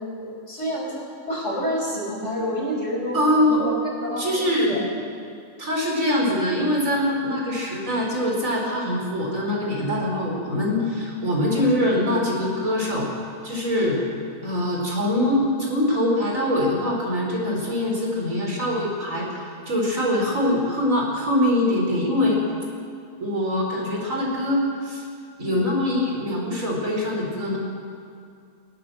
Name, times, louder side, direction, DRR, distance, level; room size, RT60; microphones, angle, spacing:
voice 1, 0.2-3.2 3.5-4.8 25.5-25.6, equal, 50° left, -4 dB, 6.3 m, -29 dB
voice 2, 3.1-3.6 4.2-4.8 5.6-13.1 13.4-14.0 14.4-22.4 23.2-25.0 25.4-27.6, left 1 dB, 60° right, -1 dB, 4.7 m, -23 dB
19.5 x 18.5 x 7.7 m, 2.3 s
omnidirectional pair, 1.6 m